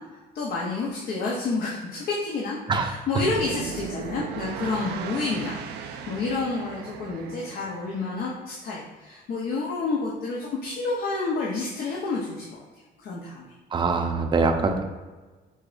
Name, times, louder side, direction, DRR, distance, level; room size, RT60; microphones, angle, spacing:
voice 1, 0.3-12.4 13.0-13.5, left 3 dB, 60° left, -3 dB, 0.8 m, -29 dB
sound 1, 3.1-8.2, right 7 dB, 80° right, 0.4 m, -37 dB
voice 2, 13.7-14.8, right 4 dB, 25° right, 4 dB, 0.6 m, -23 dB
5.2 x 3.9 x 2.5 m, 1.3 s
cardioid pair, 110°, 17 cm